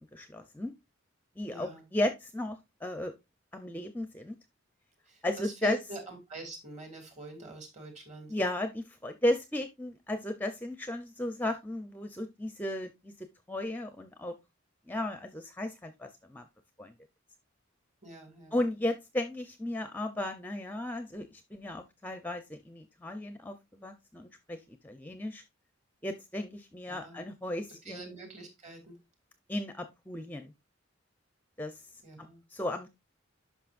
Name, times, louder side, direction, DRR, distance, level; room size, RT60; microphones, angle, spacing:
voice 1, 0.1-0.7 1.4-3.1 3.5-4.4 5.2-5.8 8.3-14.4 14.9-16.5 16.8-16.9 18.5-25.4 26.0-28.1 29.5-30.5 31.6-31.8 32.5-32.9, left 1 dB, 10° left, 8 dB, 0.6 m, -35 dB
voice 2, 1.5-1.8 5.1-8.3 18.0-18.6 26.9-27.2 27.8-29.0 32.0-32.4, right 2 dB, 35° right, 4 dB, 2.5 m, -44 dB
10.5 x 5.8 x 2.5 m, 0.22 s
head